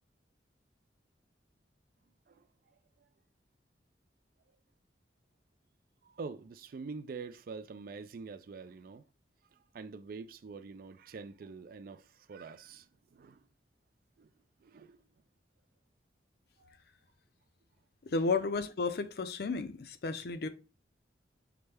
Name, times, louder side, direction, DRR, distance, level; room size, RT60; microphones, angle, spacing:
voice 1, 6.0-9.0 9.5-13.5 14.2-14.3 14.6-15.0 16.6-16.8, right 4 dB, 55° right, 0.3 m, -46 dB
voice 2, 18.1-20.5, left 4 dB, 60° left, 0.5 m, -33 dB
5.8 x 2.1 x 3.3 m
head